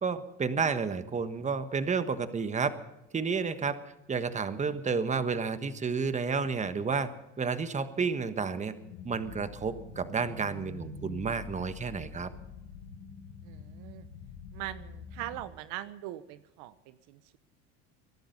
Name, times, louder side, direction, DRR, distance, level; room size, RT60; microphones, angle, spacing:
voice 1, 0.0-2.7 3.1-3.8 4.1-7.1 7.4-8.7 9.0-12.3, right 5 dB, 20° right, 11 dB, 1.4 m, -31 dB
sound 1, 8.8-15.5, left 4 dB, 80° left, 2.3 m, -46 dB
voice 2, 13.4-14.1 14.5-17.4, right 14 dB, 70° right, 14 dB, 1.0 m, -41 dB
22.0 x 11.5 x 5.4 m, 0.90 s
supercardioid pair, 100°, 32 cm